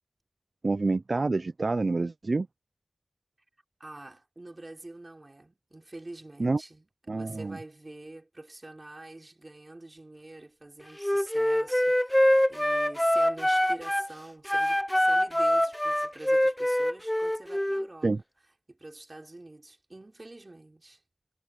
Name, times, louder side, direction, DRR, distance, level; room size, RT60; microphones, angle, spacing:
voice 1, 0.6-2.5 6.4-6.6 7.1-7.6 18.0-18.2, right 3 dB, 60° right, 0.4 m, -27 dB
voice 2, 3.8-6.9 7.1-18.1 18.7-21.0, right 2 dB, 35° right, 3.8 m, -46 dB
Wind instrument woodwind instrument, 11.0-14.1 14.4-17.9, equal, 10° left, 0.5 m, -24 dB
wide cardioid pair, 70°, 0 cm